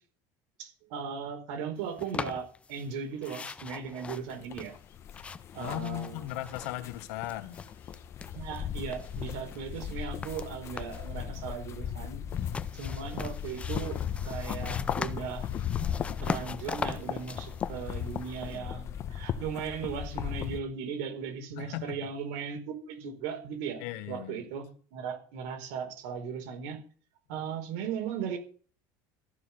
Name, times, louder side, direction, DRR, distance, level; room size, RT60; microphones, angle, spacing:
voice 1, 0.6-4.7 5.5-6.3 8.3-12.2 12.7-15.5 16.2-23.8 24.1-26.8 27.3-28.4, right 6 dB, 75° right, 4.6 m, -37 dB
sound 1, 2.0-2.9 3.2-7.0 7.2-8.6 8.9-11.1 12.3-18.6, left 5 dB, 15° left, 0.5 m, -40 dB
sound 2, 4.4-20.6, left 9 dB, 35° left, 1.1 m, -37 dB
voice 2, 5.6-7.6 15.6-15.7 21.6-22.1 23.0-23.1 23.8-24.5, left 15 dB, 80° left, 1.5 m, -37 dB
14.0 x 6.7 x 9.0 m
cardioid pair, 165°, 9 cm